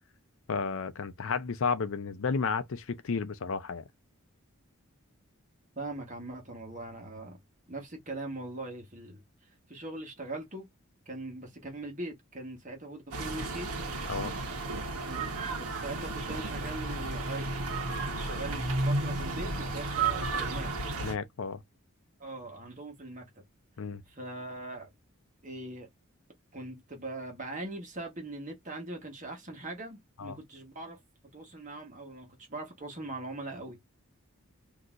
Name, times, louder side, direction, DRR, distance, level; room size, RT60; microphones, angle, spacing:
voice 1, 0.5-3.8 14.1-14.3 21.0-21.6 23.8-24.0 30.2-30.4, left 5 dB, 65° left, 0.5 m, -32 dB
voice 2, 5.7-7.4 7.7-9.2 9.7-10.7 11.1-13.7 15.1-15.3 15.6-17.6 18.1-20.7 22.2-23.4 24.1-24.9 25.4-25.9 26.5-31.0 31.3-33.8, right 2 dB, 35° right, 1.2 m, -41 dB
sound 1, 13.1-21.1, right 3 dB, 85° right, 1.1 m, -33 dB
3.8 x 2.8 x 2.4 m
head